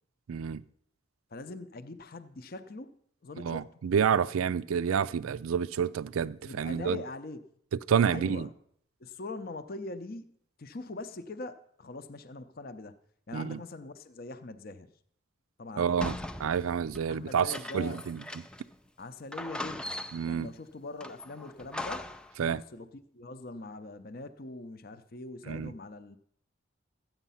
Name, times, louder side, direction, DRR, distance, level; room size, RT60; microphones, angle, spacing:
voice 1, 0.3-0.6 3.4-7.0 7.7-8.5 13.3-13.6 15.8-18.2 20.1-20.5 22.4-22.6 25.5-25.7, right 7 dB, 85° right, 0.4 m, -29 dB
voice 2, 1.3-3.0 3.2-3.8 6.4-7.4 8.1-8.5 9.0-10.3 10.6-12.9 13.3-14.9 15.6-16.3 17.1-18.0 19.0-19.9 20.2-22.1 22.4-26.2, left 2 dB, 45° left, 0.6 m, -42 dB
sound 1, 16.0-18.7 19.0-19.1 19.3-20.4 21.0-22.3, left 1 dB, 5° left, 0.4 m, -40 dB
13.5 x 9.2 x 5.6 m
head